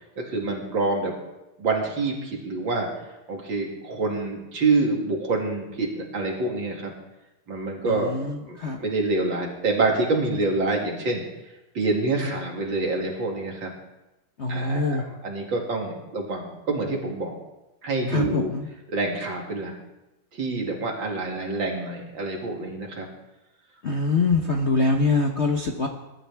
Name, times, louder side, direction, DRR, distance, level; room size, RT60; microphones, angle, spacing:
voice 1, 0.2-1.1 1.6-2.9 3.3-6.9 7.5-8.1 8.5-11.2 11.7-13.7 14.5-17.3 17.8-18.5 18.9-19.7 20.3-23.1, right 3 dB, 60° right, 0 dB, 3.0 m, -26 dB
voice 2, 7.9-8.8 14.4-15.0 18.1-18.7 23.8-25.9, left 3 dB, 45° left, 2 dB, 0.9 m, -24 dB
21.5 x 12.0 x 3.5 m, 0.97 s
omnidirectional pair, 2.4 m